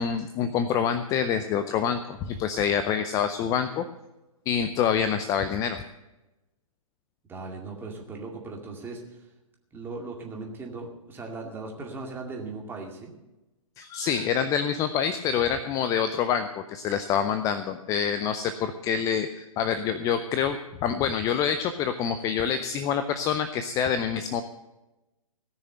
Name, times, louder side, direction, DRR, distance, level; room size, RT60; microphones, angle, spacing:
voice 1, 0.0-3.9 4.5-5.8 13.8-24.4, left 8 dB, 20° left, 10 dB, 0.5 m, -26 dB
voice 2, 7.3-9.3 9.7-13.1, right 3 dB, 10° right, 0 dB, 2.2 m, -38 dB
18.0 x 6.6 x 7.7 m, 1.0 s
figure-of-eight pair, 125°, 18 cm